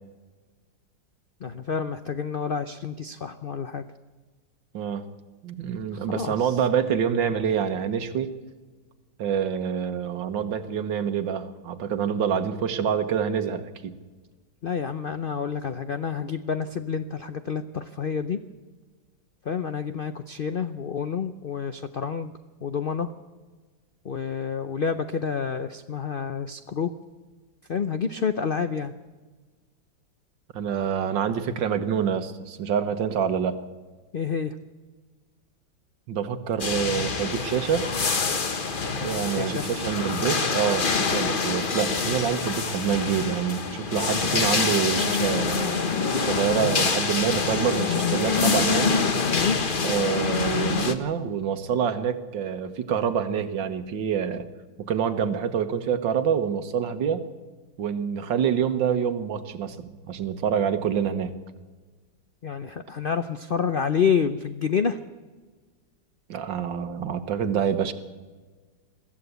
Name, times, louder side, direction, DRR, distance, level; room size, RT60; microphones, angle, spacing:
voice 1, 1.4-3.8 6.1-6.6 14.6-18.4 19.4-22.3 22.6-23.1 24.0-26.9 27.7-28.9 34.1-34.5 39.3-39.7 49.3-49.6 62.4-65.0, left 6 dB, 70° left, 10 dB, 0.5 m, -28 dB
voice 2, 4.7-5.1 5.4-8.3 9.2-14.0 30.5-33.6 36.1-37.9 38.9-45.9 46.2-48.9 49.8-54.5 54.8-57.2 57.8-61.4 66.3-67.9, right 8 dB, 85° right, 10 dB, 1.9 m, -26 dB
sound 1, 36.6-50.9, left 4 dB, 35° left, 1.0 m, -26 dB
22.0 x 14.0 x 8.2 m, 1.4 s
omnidirectional pair, 2.0 m